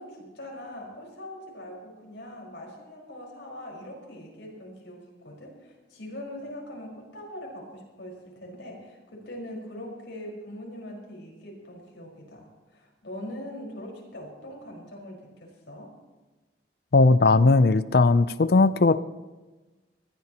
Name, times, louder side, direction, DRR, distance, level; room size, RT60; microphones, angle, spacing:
voice 1, 0.0-12.5 12.7-15.9, left 1 dB, 85° left, -1 dB, 5.0 m, -42 dB
voice 2, 16.9-19.0, left 3 dB, 55° left, 15 dB, 0.5 m, -18 dB
20.5 x 15.0 x 3.0 m, 1.2 s
head